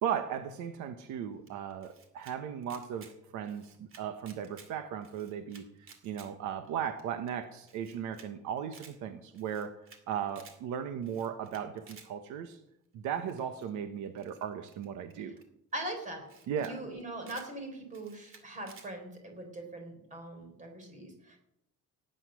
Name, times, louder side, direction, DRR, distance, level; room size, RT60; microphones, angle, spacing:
voice 1, 0.0-5.6 6.0-9.7 10.1-12.6 12.9-15.3 16.5-16.8, right 8 dB, 75° right, 9 dB, 1.2 m, -36 dB
Camera, 1.5-2.3 2.6-3.1 3.4-4.7 5.0-6.3 6.6-6.7 7.0-7.1 7.3-7.4 7.7-8.3 8.6-8.9 9.3-10.0 10.3-10.6 11.0-12.1 13.3-13.6 14.2-15.4 16.0-16.1 16.3-16.7 17.0-17.5 17.9-18.9, right 5 dB, 45° right, 2.4 m, -55 dB
voice 2, 15.7-16.3 16.6-21.4, right 1 dB, 25° right, 4 dB, 3.7 m, -41 dB
17.5 x 9.1 x 6.2 m, 0.79 s
cardioid pair, 175°, 30 cm